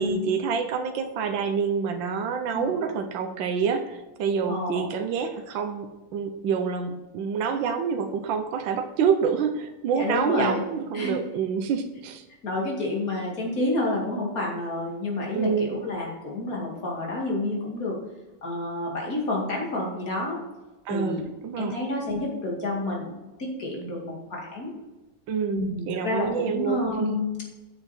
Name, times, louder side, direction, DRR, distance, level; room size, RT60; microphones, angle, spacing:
voice 1, 0.0-12.2 15.3-15.8 20.9-21.8 25.3-27.2, right 6 dB, 85° right, 6 dB, 1.5 m, -27 dB
voice 2, 4.5-4.9 9.9-10.6 10.9-11.2 12.4-18.0 18.4-20.4 20.9-21.3 21.6-24.7 25.5-27.3, left 2 dB, 50° left, -2 dB, 2.8 m, -29 dB
8.6 x 6.8 x 4.3 m, 1.1 s
omnidirectional pair, 2.0 m